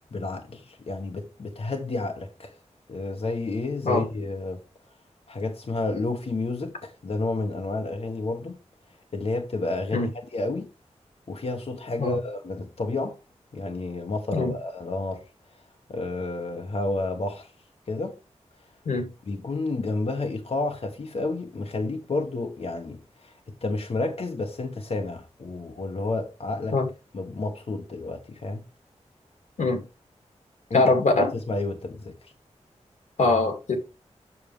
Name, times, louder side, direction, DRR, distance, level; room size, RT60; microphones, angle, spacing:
voice 1, 0.1-2.5 2.9-4.6 5.3-8.6 9.1-10.7 11.3-13.2 13.5-15.2 15.9-17.5 17.9-18.2 19.3-26.8 27.1-28.6 30.7-30.9 31.3-32.3, left 2 dB, 60° left, 1.2 m, -30 dB
voice 2, 30.7-31.3 33.2-33.8, left 3 dB, 90° left, 2.3 m, -22 dB
7.3 x 6.6 x 3.3 m
wide cardioid pair, 75°, 12 cm